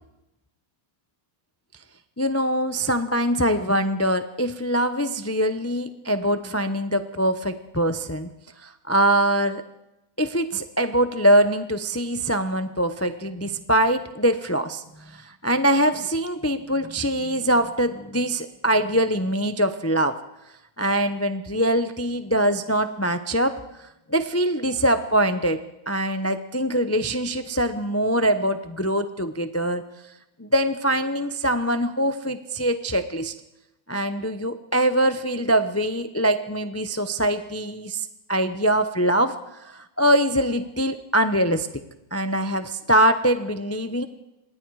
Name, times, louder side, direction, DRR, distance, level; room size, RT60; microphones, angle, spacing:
voice 1, 2.2-8.3 8.6-9.6 10.2-14.8 15.1-20.2 20.8-23.5 24.1-25.6 25.9-29.8 30.4-33.3 33.9-39.3 39.6-41.7 42.1-44.1, right 1 dB, 20° left, 9 dB, 0.4 m, -23 dB
26.0 x 21.0 x 4.8 m, 0.90 s
omnidirectional pair, 1.9 m